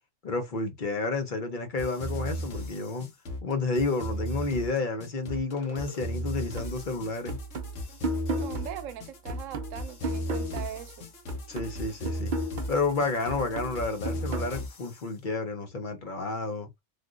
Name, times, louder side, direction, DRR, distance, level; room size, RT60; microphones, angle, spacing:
voice 1, 0.2-3.1 3.4-7.4 11.5-12.3 12.7-16.7, left 3 dB, 45° left, 0.8 m, -30 dB
sound 1, 1.8-15.0, equal, 75° left, 1.2 m, -36 dB
sound 2, 6.6-11.0 11.3-14.6, right 1 dB, 55° right, 0.5 m, -36 dB
voice 2, 8.3-11.1, right 10 dB, 90° right, 1.0 m, -40 dB
3.5 x 2.4 x 2.4 m
omnidirectional pair, 1.3 m